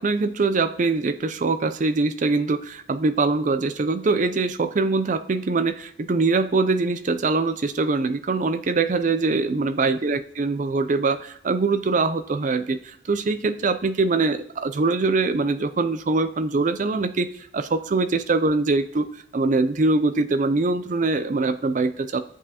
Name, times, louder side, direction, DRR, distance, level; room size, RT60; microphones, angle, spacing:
voice 1, 0.0-22.2, right 3 dB, 40° right, 11 dB, 0.4 m, -23 dB
14.0 x 7.1 x 2.8 m, 0.70 s
head